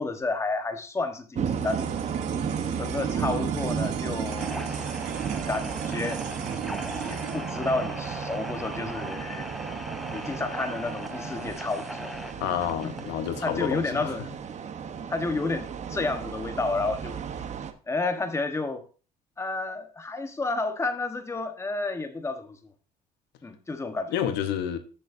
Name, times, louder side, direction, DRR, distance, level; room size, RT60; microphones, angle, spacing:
voice 1, 0.0-1.9 2.8-4.8 5.5-6.2 7.1-9.5 10.1-12.1 13.4-14.3 15.1-17.2 17.9-18.8 19.4-22.7 23.4-24.2, left 3 dB, 15° left, 1.1 m, -31 dB
sound 1, 1.3-17.7, right 7 dB, 45° right, 0.9 m, -34 dB
sound 2, 1.4-11.9, right 10 dB, 90° right, 1.1 m, -40 dB
sound 3, 4.2-13.2, equal, ahead, 0.7 m, -39 dB
voice 2, 12.4-14.2 24.1-24.8, left 10 dB, 90° left, 0.9 m, -29 dB
13.5 x 6.3 x 2.6 m
cardioid pair, 110°, 17 cm